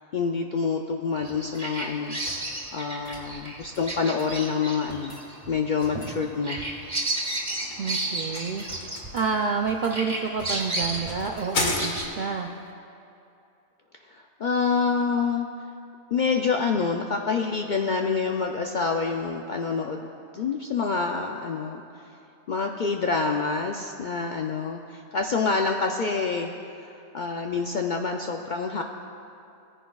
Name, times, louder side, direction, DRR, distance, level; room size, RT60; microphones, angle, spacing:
voice 1, 0.1-2.2 2.7-5.2 5.5-6.7 14.0-15.7 16.1-20.1 20.3-22.1 22.5-26.5 26.8-28.8, left 5 dB, 65° left, 2 dB, 0.4 m, -27 dB
Bird vocalization bird call bird song, 1.1-9.6 9.9-12.0, right 2 dB, 30° right, 1.6 m, -32 dB
sound 1, 1.2-2.5 3.0-3.3 3.7-4.4 4.9-5.3 5.8-6.2 7.0-7.6 7.9-8.1 8.3-10.0 10.4-10.8 11.2-11.6, right 1 dB, 30° left, 2.3 m, -48 dB
sound 2, 7.3-12.4, left 2 dB, 85° left, 1.5 m, -34 dB
voice 2, 7.8-8.6 9.1-12.5, right 5 dB, 65° right, 3 dB, 0.4 m, -28 dB
18.0 x 9.9 x 2.3 m, 2.7 s
omnidirectional pair, 1.3 m